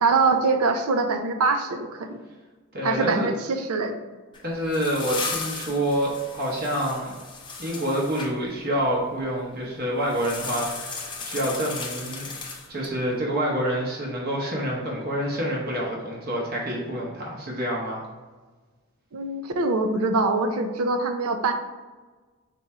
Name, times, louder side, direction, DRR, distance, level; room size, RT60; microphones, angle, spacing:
voice 1, 0.0-2.2 2.8-3.9 19.1-21.5, right 3 dB, 90° right, 6 dB, 0.5 m, -23 dB
voice 2, 2.7-3.3 4.4-7.1 7.6-12.3 12.7-18.0, equal, 45° right, -3 dB, 0.8 m, -27 dB
sound 1, 4.3-8.3 10.1-13.0, left 4 dB, 20° left, 0.5 m, -35 dB
4.2 x 2.6 x 4.6 m, 1.3 s
head